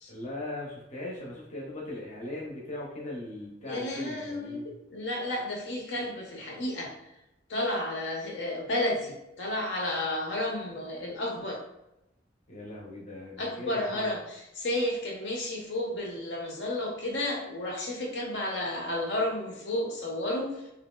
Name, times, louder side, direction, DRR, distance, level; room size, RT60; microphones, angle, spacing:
voice 1, 0.1-4.7 12.5-14.1, left 1 dB, 40° left, -4 dB, 0.6 m, -39 dB
voice 2, 3.7-6.9 7.5-11.6 13.4-20.6, left 1 dB, 75° left, 0 dB, 0.7 m, -32 dB
2.8 x 2.7 x 2.2 m, 0.87 s
head